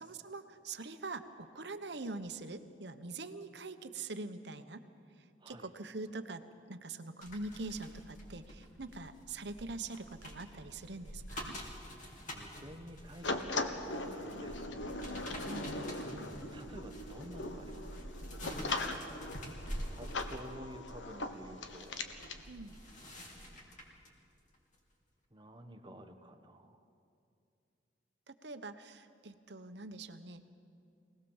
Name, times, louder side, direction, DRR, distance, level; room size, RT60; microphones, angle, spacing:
voice 1, 0.0-4.8 5.5-11.6 15.5-15.8 22.5-22.7 28.3-30.5, right 3 dB, 65° right, 9 dB, 1.1 m, -44 dB
sound 1, 7.2-24.1 24.5-24.7, equal, 45° left, 3.2 m, -47 dB
voice 2, 12.3-14.7 16.0-19.1 19.9-22.0 25.3-26.8, equal, 25° right, 6 dB, 1.3 m, -51 dB
sound 2, 13.2-22.4, left 2 dB, 80° left, 1.4 m, -40 dB
23.5 x 18.5 x 7.3 m, 2.5 s
head